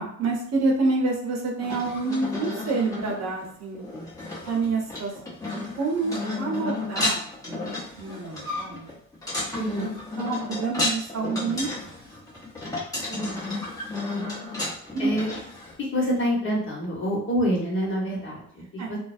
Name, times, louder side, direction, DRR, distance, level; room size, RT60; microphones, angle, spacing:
voice 1, 0.0-3.9 4.5-8.9 10.2-11.9 14.9-15.1 18.8-18.9, right 3 dB, 60° right, -1 dB, 0.9 m, -28 dB
sound 1, 1.6-15.7, left 2 dB, 10° left, 0.9 m, -32 dB
voice 2, 9.5-9.9 13.1-13.7 14.1-14.3 15.0-15.3 15.8-19.0, equal, 40° left, -3 dB, 1.2 m, -27 dB
2.4 x 2.1 x 2.5 m, 0.63 s
cardioid pair, 90°, 30 cm